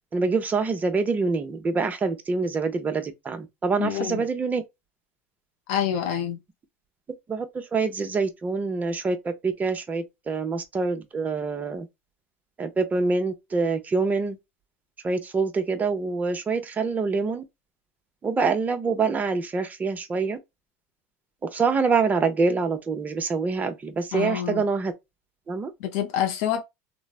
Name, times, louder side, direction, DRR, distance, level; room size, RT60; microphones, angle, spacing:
voice 1, 0.1-4.6 7.3-11.9 12.6-14.4 15.0-17.4 18.2-20.4 21.4-24.9 25.5-25.7, right 4 dB, 20° right, 0.7 m, -25 dB
voice 2, 3.8-4.2 5.7-6.4 24.1-24.6 25.8-26.6, left 9 dB, 70° left, 0.5 m, -27 dB
3.1 x 2.1 x 2.3 m
supercardioid pair, 105°, 7 cm